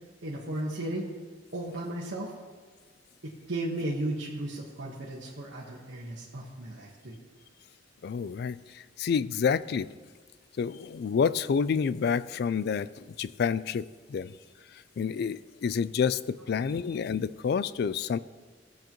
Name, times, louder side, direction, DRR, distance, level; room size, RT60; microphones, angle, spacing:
voice 1, 0.2-1.1 1.5-2.3 3.2-7.2, right 1 dB, 75° right, -5 dB, 1.3 m, -35 dB
voice 2, 8.0-8.6 9.0-9.9 10.6-12.9 13.2-13.8 14.1-14.3 15.0-18.2, left 6 dB, 60° left, 17 dB, 0.3 m, -28 dB
16.5 x 7.7 x 3.0 m, 1.4 s
head